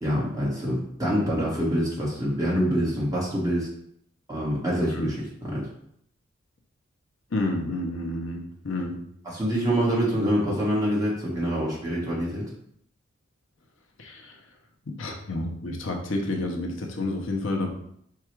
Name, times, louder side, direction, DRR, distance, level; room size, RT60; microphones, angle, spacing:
voice 1, 0.0-3.7 4.3-5.1 5.4-5.6 9.2-12.5, equal, 15° right, -5 dB, 1.3 m, -25 dB
voice 2, 7.3-9.0 14.0-14.3 14.9-17.7, left 2 dB, 75° left, 2 dB, 0.7 m, -30 dB
4.7 x 2.3 x 4.5 m, 0.70 s
head